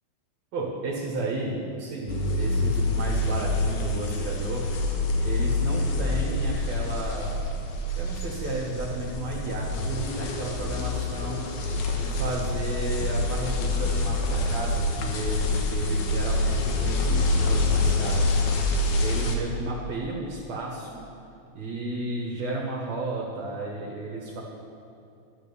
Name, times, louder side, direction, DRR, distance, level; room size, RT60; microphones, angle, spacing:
voice 1, 0.5-4.6 5.2-7.3 8.0-11.5 11.9-18.4 19.0-21.0 21.5-24.4, right 2 dB, 65° right, -3 dB, 2.6 m, -33 dB
sound 1, 2.1-19.4, left 2 dB, 80° left, 2.7 m, -26 dB
11.5 x 9.3 x 6.9 m, 2.6 s
omnidirectional pair, 3.4 m